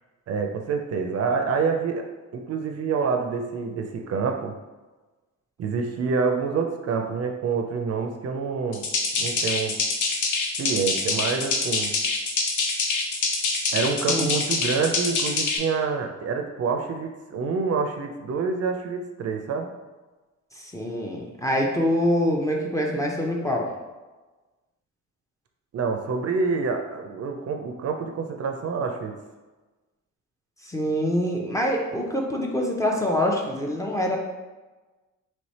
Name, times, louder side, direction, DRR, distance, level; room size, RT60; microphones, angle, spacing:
voice 1, 0.3-2.0 2.3-4.5 5.6-8.9 9.2-9.8 10.6-11.9 13.7-19.7 25.7-29.2, right 5 dB, 55° right, 4 dB, 0.5 m, -27 dB
sound 1, 8.7-15.6, left 3 dB, 75° left, 0.7 m, -25 dB
voice 2, 20.6-23.7 30.6-34.2, left 1 dB, 10° left, -1 dB, 0.5 m, -25 dB
3.2 x 3.1 x 4.1 m, 1.2 s
cardioid pair, 125°, 30 cm